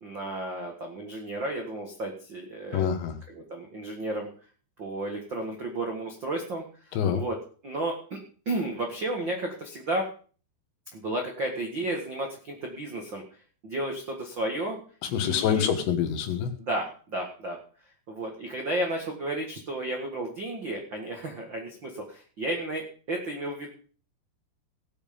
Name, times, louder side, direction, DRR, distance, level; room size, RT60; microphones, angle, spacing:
voice 1, 0.0-2.9 3.3-4.3 4.8-6.6 7.1-7.4 7.6-8.2 8.4-10.1 10.9-13.2 13.6-14.8 15.2-15.7 16.6-17.6 18.1-23.7, right 1 dB, 70° right, 2 dB, 1.1 m, -32 dB
voice 2, 2.7-3.2 6.9-7.2 15.0-16.5, left 8 dB, 75° left, 8 dB, 3.5 m, -26 dB
18.0 x 7.4 x 5.2 m, 0.41 s
omnidirectional pair, 5.3 m